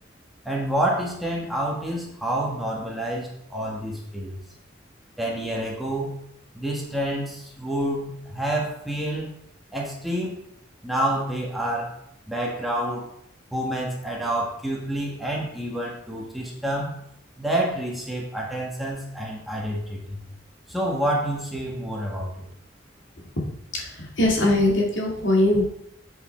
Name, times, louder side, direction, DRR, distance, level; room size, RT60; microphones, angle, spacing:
voice 1, 0.4-4.4 5.2-6.2 6.5-9.3 9.7-10.4 10.8-11.9 12.3-13.1 13.5-17.0 17.4-20.2 20.7-22.5, right 1 dB, ahead, -3 dB, 1.6 m, -28 dB
voice 2, 24.2-25.7, left 1 dB, 75° left, -2 dB, 2.2 m, -20 dB
7.9 x 5.8 x 4.4 m, 0.74 s
head